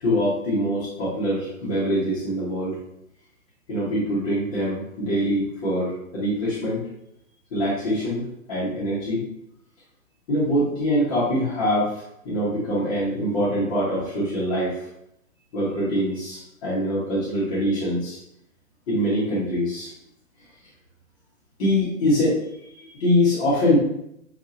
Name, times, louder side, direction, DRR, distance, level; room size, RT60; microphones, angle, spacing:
voice 1, 0.0-2.8 3.7-6.8 7.5-8.2 8.5-9.2 10.3-14.8 15.5-18.2 18.9-19.9 21.6-22.4 22.7-23.8, equal, 25° left, -8 dB, 1.1 m, -24 dB
5.3 x 2.6 x 2.5 m, 0.78 s
hypercardioid pair, 150°, 41 cm